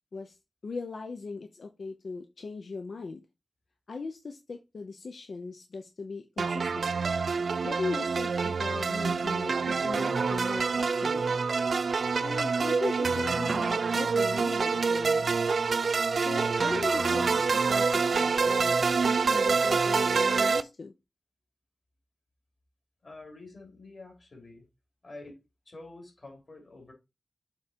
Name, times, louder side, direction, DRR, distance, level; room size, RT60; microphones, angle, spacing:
voice 1, 0.6-3.2 3.9-6.9 7.6-11.4 12.2-15.3 16.2-20.9, left 4 dB, 65° left, 0.7 m, -38 dB
sound 1, 6.4-20.6, right 5 dB, 70° right, 0.4 m, -26 dB
voice 2, 23.0-24.7 25.0-25.4 25.6-26.9, left 2 dB, 45° left, 3.2 m, -47 dB
7.1 x 3.8 x 4.4 m
wide cardioid pair, 90°, 0 cm